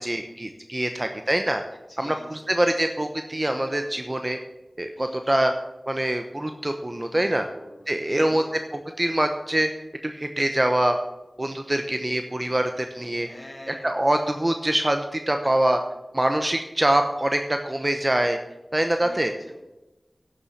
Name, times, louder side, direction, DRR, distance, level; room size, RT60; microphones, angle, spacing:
voice 1, 0.0-1.6 2.0-4.4 4.8-5.5 5.9-7.4 7.9-8.4 8.7-9.7 10.0-11.0 11.4-13.3 13.7-15.8 16.1-18.4 18.7-19.3, right 1 dB, 30° right, 6 dB, 0.9 m, -24 dB
voice 2, 1.9-2.4 4.9-5.4 7.1-8.6 13.1-14.0 18.9-19.6, equal, 30° left, -3 dB, 5.2 m, -45 dB
11.0 x 7.2 x 7.3 m, 1.0 s
wide cardioid pair, 55°, 0 cm